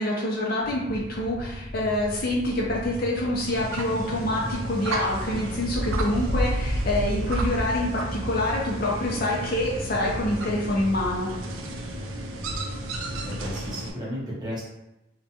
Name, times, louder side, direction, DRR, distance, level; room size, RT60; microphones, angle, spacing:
voice 1, 0.0-11.3, left 1 dB, 45° left, -4 dB, 0.5 m, -26 dB
sound 1, 0.6-13.8, equal, 25° left, 1.0 m, -38 dB
sound 2, 3.5-13.9, right 1 dB, 85° right, 0.4 m, -31 dB
voice 2, 13.2-14.7, equal, 20° right, -6 dB, 0.7 m, -33 dB
2.5 x 2.2 x 2.7 m, 0.94 s
head